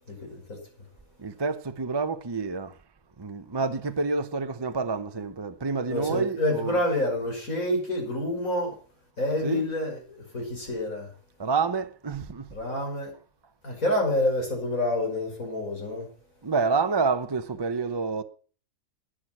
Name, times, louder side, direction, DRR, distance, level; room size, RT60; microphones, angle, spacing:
voice 1, 0.1-0.6 5.9-8.8 9.2-11.1 12.5-13.1 13.6-16.1, left 1 dB, 75° left, 6.2 m, -28 dB
voice 2, 1.2-2.8 3.2-6.8 9.4-9.6 11.4-12.5 16.4-18.2, right 4 dB, 25° right, 0.6 m, -28 dB
11.5 x 10.0 x 5.9 m
omnidirectional pair, 1.4 m